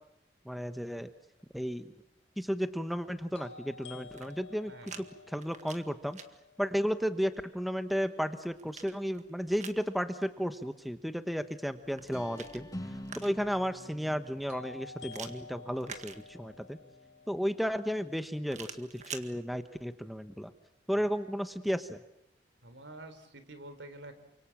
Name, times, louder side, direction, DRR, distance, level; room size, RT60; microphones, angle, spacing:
voice 1, 0.4-1.1 1.5-1.9 2.4-6.2 6.6-12.7 13.2-16.8 17.3-20.5 20.9-22.0, equal, ahead, 9 dB, 1.0 m, -33 dB
sound 1, 1.4-1.5 3.3-7.3 14.5-18.5, left 4 dB, 65° left, 3.1 m, -51 dB
sound 2, 4.0-5.0 5.3-6.3 8.0-9.8 11.8-13.6 15.1-16.7 18.5-19.3, right 6 dB, 40° right, 2.0 m, -47 dB
voice 2, 4.7-5.0 22.6-24.2, right 2 dB, 75° right, 10 dB, 3.9 m, -48 dB
sound 3, 11.9-17.6, equal, 20° left, 1.7 m, -48 dB
29.0 x 26.0 x 7.5 m, 0.77 s
head